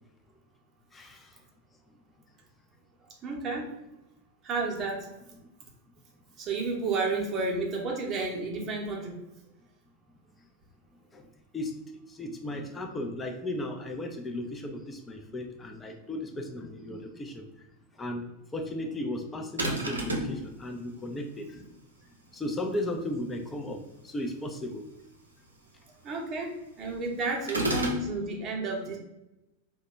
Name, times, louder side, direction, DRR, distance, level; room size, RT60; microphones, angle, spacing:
voice 1, 0.9-1.3 11.1-11.2 11.5-11.7 12.1-17.5 18.0-18.2 18.5-21.6 22.3-24.8, left 1 dB, 15° left, 4 dB, 0.5 m, -35 dB
voice 2, 3.2-3.7 4.4-5.1 6.4-9.2 26.0-29.0, right 3 dB, 25° right, -1 dB, 0.8 m, -31 dB
sound 1, 19.6-20.4 27.5-28.1, right 1 dB, 75° right, 0.6 m, -29 dB
2.8 x 2.2 x 4.1 m, 0.94 s
figure-of-eight pair, 90°, 0 cm